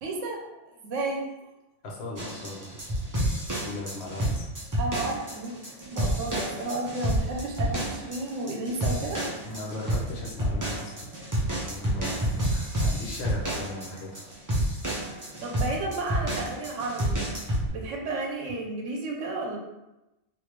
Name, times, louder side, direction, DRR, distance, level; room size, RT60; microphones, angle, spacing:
voice 1, 0.0-1.2 4.8-9.2 15.4-17.2 17.7-19.6, right 2 dB, 85° right, -1 dB, 1.0 m, -32 dB
voice 2, 1.8-2.7 3.6-4.5 9.4-11.1 11.7-14.2, left 2 dB, 60° left, -2 dB, 1.1 m, -37 dB
sound 1, 2.2-17.7, right 1 dB, 20° right, 0.6 m, -29 dB
3.2 x 2.6 x 3.0 m, 0.97 s
omnidirectional pair, 1.3 m